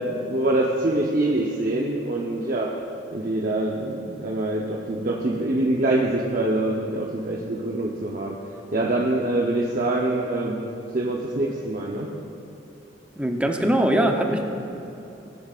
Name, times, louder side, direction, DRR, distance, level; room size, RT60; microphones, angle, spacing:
voice 1, 0.0-2.8 3.1-8.4 8.7-10.6 10.9-12.1 13.9-14.1, right 1 dB, 50° right, -2 dB, 0.8 m, -25 dB
voice 2, 13.2-14.4, right 1 dB, 5° right, 2 dB, 0.7 m, -22 dB
19.0 x 9.9 x 2.5 m, 2.9 s
head